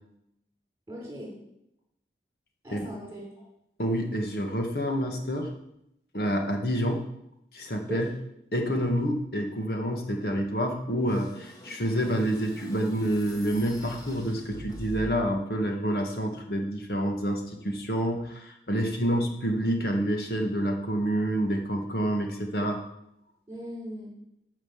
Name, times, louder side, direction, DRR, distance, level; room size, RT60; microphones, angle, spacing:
voice 1, 0.9-1.3 2.6-3.2 7.9-8.1 19.0-19.2 23.5-24.1, equal, 15° right, -2 dB, 4.7 m, -38 dB
voice 2, 3.8-5.5 6.1-7.0 7.5-8.1 8.5-22.8, equal, 55° left, 2 dB, 1.9 m, -28 dB
sound 1, 11.1-15.4, equal, 20° left, 1.8 m, -44 dB
12.5 x 5.9 x 7.3 m, 0.80 s
head